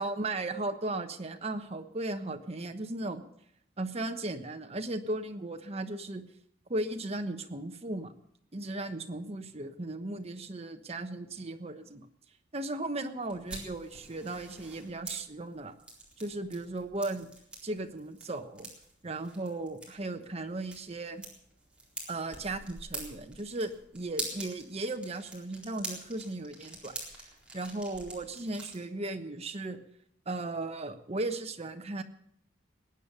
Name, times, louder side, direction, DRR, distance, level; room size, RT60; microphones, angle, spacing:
voice 1, 0.0-3.2 3.8-6.2 6.7-8.1 8.5-12.1 12.5-15.7 16.2-17.3 17.6-18.7 19.0-21.2 22.1-26.9 27.5-29.8 30.3-32.0, right 2 dB, 35° right, 6 dB, 1.2 m, -36 dB
sound 1, 13.3-28.8, right 2 dB, 5° right, 4.1 m, -45 dB
20.5 x 9.0 x 6.8 m, 0.69 s
head